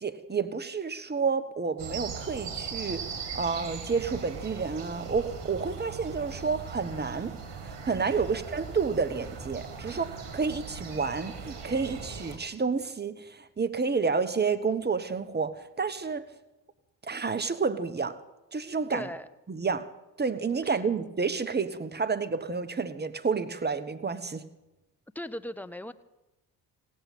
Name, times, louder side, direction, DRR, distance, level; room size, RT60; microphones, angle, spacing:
voice 1, 0.0-3.1 3.3-7.4 7.8-16.3 17.0-18.2 18.5-19.1 19.5-19.9 20.2-24.4, right 5 dB, 20° right, 1.3 m, -30 dB
sound 1, 1.8-12.4, right 5 dB, 60° right, 2.8 m, -39 dB
voice 2, 18.9-19.3 20.6-20.8 25.1-25.9, left 1 dB, 5° left, 0.9 m, -38 dB
16.5 x 8.6 x 9.1 m
hypercardioid pair, 55°, 47 cm